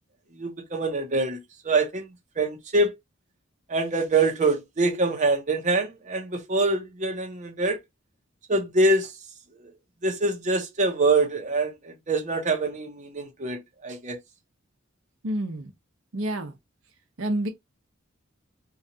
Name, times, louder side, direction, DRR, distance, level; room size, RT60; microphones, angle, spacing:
voice 1, 0.4-1.4 1.6-2.0 2.4-2.9 3.7-7.8 8.5-9.1 10.0-14.2, right 2 dB, 40° right, 0.7 m, -24 dB
voice 2, 15.2-15.7 16.1-16.5 17.2-17.5, right 1 dB, 90° right, 0.7 m, -28 dB
2.9 x 2.3 x 2.7 m
head